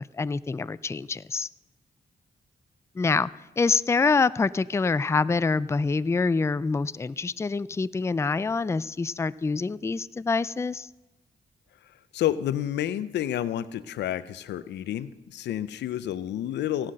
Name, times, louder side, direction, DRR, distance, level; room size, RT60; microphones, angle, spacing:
voice 1, 0.0-1.5 3.0-3.3 3.6-10.9, left 4 dB, 15° left, 18 dB, 0.3 m, -26 dB
voice 2, 12.1-16.9, left 11 dB, 90° left, 16 dB, 0.5 m, -29 dB
16.5 x 5.7 x 6.4 m, 1.0 s
cardioid pair, 60°, 17 cm